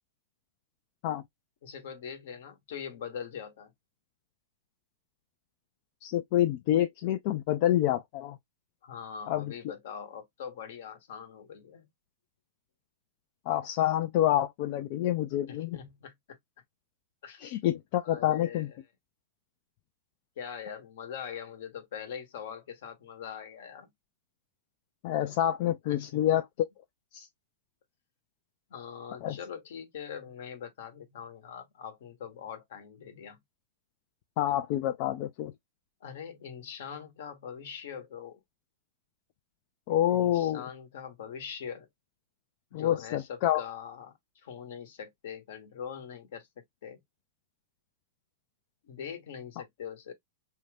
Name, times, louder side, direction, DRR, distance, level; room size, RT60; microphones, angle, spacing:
voice 1, 1.6-3.7 8.8-11.9 15.5-16.1 17.2-17.4 18.0-18.7 20.4-23.9 25.8-26.4 28.7-33.4 36.0-38.4 40.1-41.9 42.8-46.5 46.8-47.0 48.8-50.1, left 7 dB, 70° left, 1.1 m, -42 dB
voice 2, 6.0-8.4 9.3-9.5 13.5-15.8 17.4-18.7 25.0-26.7 27.1-27.3 29.2-29.4 34.4-35.5 39.9-40.6 42.7-43.6, left 12 dB, 50° left, 0.5 m, -27 dB
2.7 x 2.3 x 3.3 m
hypercardioid pair, 120°, 0 cm